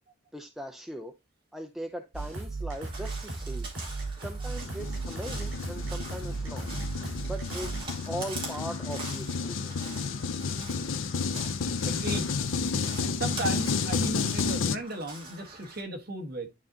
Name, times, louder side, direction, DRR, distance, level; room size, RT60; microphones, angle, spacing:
voice 1, 0.3-1.1 1.5-3.7 4.2-6.7 7.3-9.9, right 1 dB, ahead, 0.5 m, -39 dB
sound 1, 2.1-7.8, right 3 dB, 70° right, 5.2 m, -36 dB
Crow, 2.7-15.8, right 2 dB, 25° right, 2.5 m, -44 dB
sound 2, 4.5-14.8, left 5 dB, 75° left, 0.6 m, -31 dB
voice 2, 11.9-12.3 13.0-16.5, right 1 dB, 45° right, 1.4 m, -35 dB
11.0 x 4.0 x 2.7 m
head